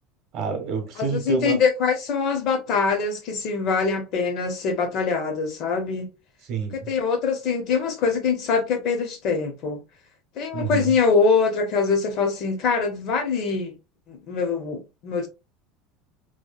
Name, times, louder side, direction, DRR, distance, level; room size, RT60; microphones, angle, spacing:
voice 1, 0.3-1.6 6.5-6.9 10.5-10.9, right 5 dB, 45° right, 0.7 m, -27 dB
voice 2, 1.0-6.1 6.9-9.8 10.4-13.7 14.1-15.3, left 5 dB, 40° left, 0.5 m, -23 dB
2.7 x 2.0 x 2.3 m
cardioid pair, 170°, 0 cm